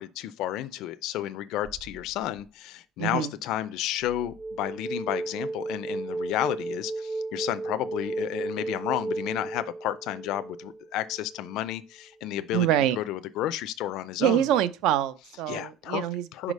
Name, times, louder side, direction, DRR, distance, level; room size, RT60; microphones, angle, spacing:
voice 1, 0.0-12.7 13.0-14.5 15.5-16.0 16.3-16.5, left 13 dB, 65° left, 0.4 m, -32 dB
sound 1, 1.6-2.4 4.1-11.7, right 2 dB, 25° right, 0.6 m, -35 dB
voice 2, 3.0-3.3 12.5-13.0 14.2-16.5, right 11 dB, 75° right, 0.5 m, -25 dB
4.9 x 4.2 x 5.3 m
cardioid pair, 175°, 0 cm